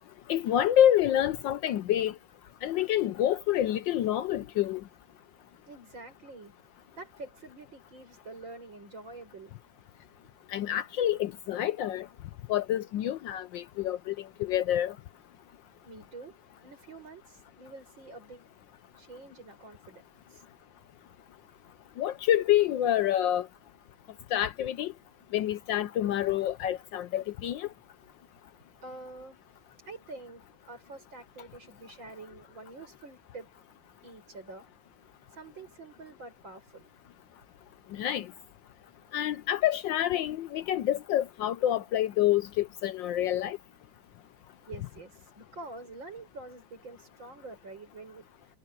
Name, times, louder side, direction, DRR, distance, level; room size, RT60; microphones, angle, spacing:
voice 1, 0.3-2.1 2.6-4.8 10.5-12.1 12.5-14.1 14.4-15.0 22.0-23.5 24.3-24.9 25.3-27.7 37.9-38.3 39.1-43.6, left 11 dB, 70° left, 1.2 m, -27 dB
voice 2, 5.7-6.5 6.9-9.5 15.8-16.4 16.6-18.4 19.0-20.4 28.8-29.4 29.9-33.5 34.0-34.7 35.3-36.9 44.7-48.3, right 3 dB, 60° right, 7.5 m, -46 dB
omnidirectional pair, 2.3 m